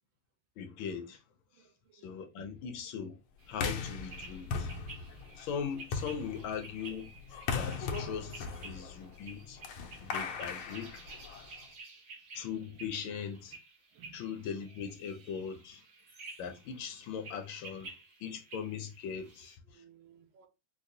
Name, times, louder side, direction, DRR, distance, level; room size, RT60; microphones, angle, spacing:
voice 1, 0.6-1.2 1.9-3.2 3.5-4.7 5.4-7.1 7.5-9.6 10.0-11.0 12.3-13.6 14.1-15.8 16.4-17.9 18.2-19.8, left 7 dB, 75° left, 1.2 m, -40 dB
voice 2, 1.5-2.1 2.4-2.6 11.1-11.2 13.9-14.3 19.7-20.5, right 8 dB, 75° right, 1.4 m, -59 dB
sound 1, 3.4-19.6, right 3 dB, 50° right, 0.9 m, -52 dB
sound 2, 3.5-11.6, left 5 dB, 90° left, 1.5 m, -39 dB
4.7 x 2.1 x 2.6 m
omnidirectional pair, 2.3 m